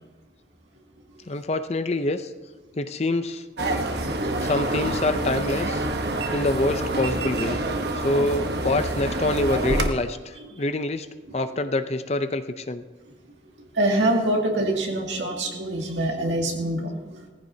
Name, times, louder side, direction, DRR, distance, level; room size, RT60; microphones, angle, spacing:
voice 1, 1.3-2.3 2.8-3.4 4.4-5.9 6.3-7.6 7.9-11.1 11.3-12.8, left 2 dB, 35° left, 10 dB, 0.6 m, -26 dB
sound 1, 3.6-9.9, right 1 dB, 65° right, 1.1 m, -27 dB
voice 2, 13.7-17.1, right 1 dB, 90° right, 0 dB, 2.3 m, -25 dB
19.0 x 14.5 x 2.8 m, 1.2 s
head